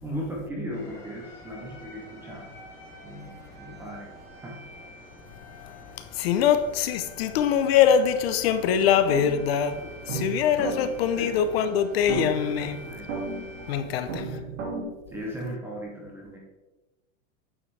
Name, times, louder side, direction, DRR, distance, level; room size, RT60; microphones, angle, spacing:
voice 1, 0.0-2.5 3.0-4.1 4.4-4.6 8.8-8.9 11.2-11.4 12.5-13.1 13.9-14.4 15.1-16.4, equal, 5° right, -2 dB, 0.5 m, -37 dB
sound 1, 0.7-13.8, left 1 dB, 10° left, 2.6 m, -47 dB
voice 2, 6.1-12.8 13.7-14.2, left 8 dB, 50° left, 10 dB, 0.7 m, -23 dB
sound 2, 8.8-14.8, right 3 dB, 70° right, 2.2 m, -35 dB
8.7 x 6.7 x 3.3 m, 1.1 s
supercardioid pair, 175°, 40 cm